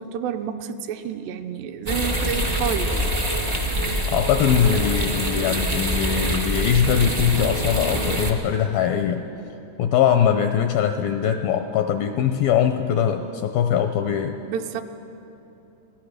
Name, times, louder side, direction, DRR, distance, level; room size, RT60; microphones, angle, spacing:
voice 1, 0.0-3.0 14.5-14.8, right 8 dB, 80° right, 7 dB, 2.8 m, -29 dB
sound 1, 1.8-8.3, equal, 35° right, 0.6 m, -25 dB
voice 2, 4.1-9.3 9.8-14.4, left 8 dB, 85° left, 7 dB, 2.1 m, -21 dB
28.5 x 17.0 x 6.5 m, 3.0 s
omnidirectional pair, 5.0 m